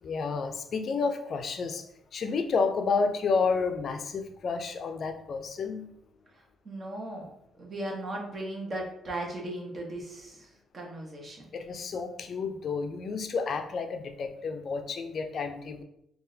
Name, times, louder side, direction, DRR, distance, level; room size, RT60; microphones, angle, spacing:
voice 1, 0.0-5.9 11.5-15.8, left 4 dB, 55° left, 6 dB, 0.4 m, -30 dB
voice 2, 6.3-7.3 7.6-10.5 10.7-11.4, right 1 dB, 40° right, 0 dB, 1.0 m, -37 dB
3.7 x 2.4 x 2.7 m, 0.74 s
cardioid pair, 90°, 0 cm